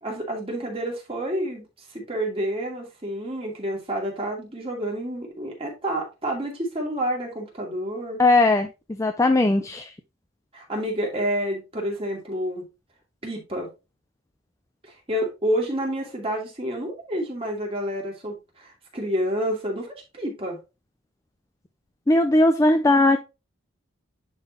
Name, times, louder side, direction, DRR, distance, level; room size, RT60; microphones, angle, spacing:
voice 1, 0.0-1.6 1.9-8.2 10.5-12.7 13.2-13.7 14.8-20.6, equal, 30° right, -1 dB, 2.5 m, -29 dB
voice 2, 8.2-8.7 9.0-9.9 22.1-23.2, left 2 dB, 15° left, 7 dB, 0.4 m, -18 dB
10.5 x 3.8 x 2.9 m, 0.27 s
head